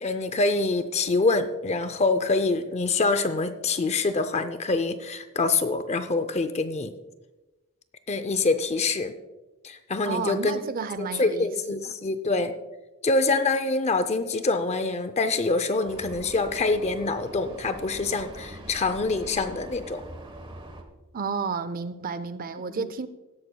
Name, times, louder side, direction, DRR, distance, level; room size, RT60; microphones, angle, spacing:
voice 1, 0.0-6.9 8.1-9.1 9.6-10.6 11.0-12.5 13.0-20.0 22.7-22.8, left 3 dB, 30° left, 0.5 m, -25 dB
voice 2, 10.0-11.9 21.1-23.1, right 5 dB, 40° right, 0.5 m, -32 dB
Vehicle, 15.8-20.8, right 1 dB, 25° right, 1.2 m, -43 dB
17.0 x 13.0 x 2.3 m
head